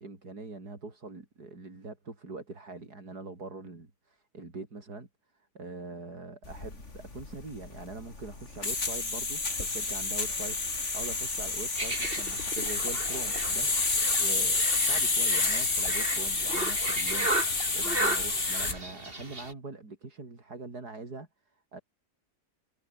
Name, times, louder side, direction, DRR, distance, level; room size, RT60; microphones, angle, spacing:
voice 1, 0.0-5.1 5.3-21.8, right 3 dB, 90° right, 4.8 m, -43 dB
sound 1, 6.4-18.8, left 3 dB, 50° left, 3.5 m, -29 dB
sound 2, 11.7-19.5, right 2 dB, 35° right, 4.7 m, -35 dB
omnidirectional pair, 1.6 m